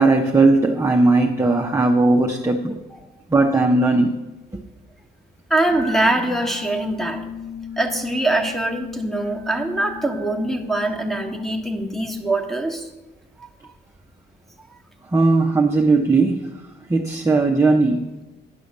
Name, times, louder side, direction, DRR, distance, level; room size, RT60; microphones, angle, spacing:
voice 1, 0.0-2.8 3.3-4.1 4.5-4.6 15.1-16.6 16.9-18.2, right 3 dB, 15° right, 1 dB, 0.8 m, -18 dB
voice 2, 5.5-7.3 7.8-12.9 13.4-13.5, right 2 dB, ahead, 4 dB, 1.3 m, -23 dB
sound 1, 5.7-12.3, left 6 dB, 75° left, 2.1 m, -35 dB
10.5 x 5.7 x 6.5 m, 1.1 s
cardioid pair, 90°, 20 cm